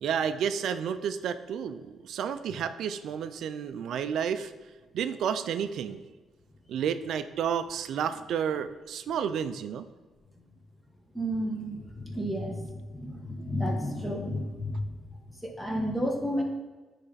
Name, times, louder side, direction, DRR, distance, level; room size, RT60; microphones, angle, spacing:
voice 1, 0.0-4.5 4.9-6.0 6.7-9.8, right 8 dB, 75° right, 11 dB, 0.4 m, -31 dB
voice 2, 11.1-14.9 15.4-16.4, equal, 5° left, 2 dB, 1.3 m, -31 dB
9.7 x 3.3 x 4.1 m, 1.3 s
cardioid pair, 90°, 0 cm